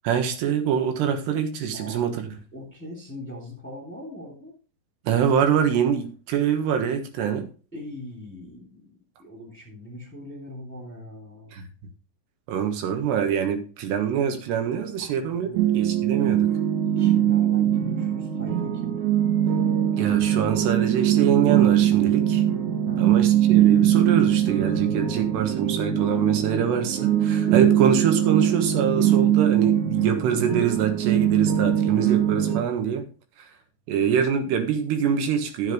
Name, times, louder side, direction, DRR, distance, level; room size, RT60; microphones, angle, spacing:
voice 1, 0.0-2.3 5.1-7.5 11.5-11.6 12.5-16.5 20.0-22.4 23.0-33.1 33.9-35.7, right 8 dB, 85° right, 6 dB, 3.5 m, -24 dB
voice 2, 1.7-2.1 2.5-4.5 7.7-8.9 9.2-11.5 14.9-15.6 16.9-19.0 22.9-23.2, left 1 dB, 5° left, -2 dB, 2.3 m, -40 dB
sound 1, 15.5-32.6, right 11 dB, 65° right, 1.9 m, -21 dB
13.0 x 7.5 x 3.1 m, 0.36 s
omnidirectional pair, 4.7 m